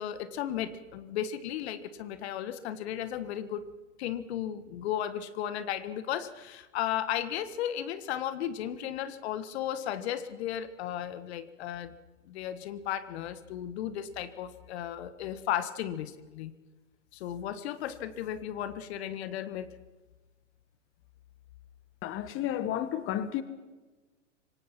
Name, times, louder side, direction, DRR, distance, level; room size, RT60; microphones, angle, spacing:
voice 1, 0.0-3.6 4.0-11.9 12.3-16.5 17.1-19.7, left 10 dB, 55° left, 1.6 m, -35 dB
voice 2, 22.0-23.4, left 11 dB, 35° left, 1.5 m, -32 dB
26.0 x 18.5 x 5.9 m
hypercardioid pair, 110°, 38 cm